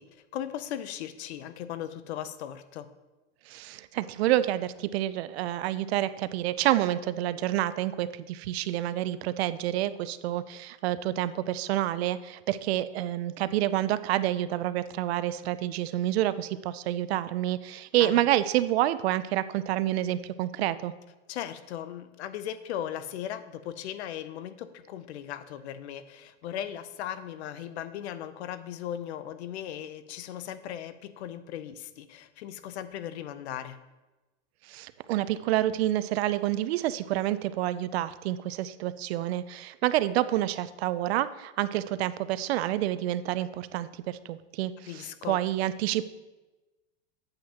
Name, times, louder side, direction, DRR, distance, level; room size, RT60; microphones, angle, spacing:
voice 1, 0.0-2.9 18.0-18.2 21.3-33.8 44.8-45.4, left 10 dB, 70° left, 13 dB, 0.7 m, -38 dB
voice 2, 3.5-20.9 34.7-44.7 45.3-46.0, right 13 dB, 65° right, 15 dB, 0.5 m, -28 dB
8.7 x 7.5 x 2.9 m, 1.1 s
supercardioid pair, 150°, 35 cm